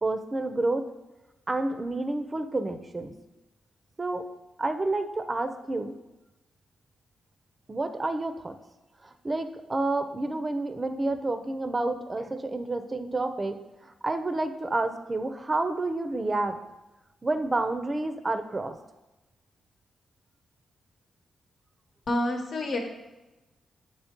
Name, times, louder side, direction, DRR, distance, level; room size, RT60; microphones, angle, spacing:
voice 1, 0.0-0.9 1.5-3.1 4.0-4.3 4.6-5.9 7.7-8.5 9.2-13.5 14.0-16.6 17.2-18.7, right 2 dB, 30° right, 9 dB, 0.5 m, -29 dB
voice 2, 22.1-22.8, left 1 dB, 60° left, 2 dB, 1.0 m, -28 dB
7.1 x 3.1 x 4.4 m, 1.0 s
cardioid pair, 70°, 0 cm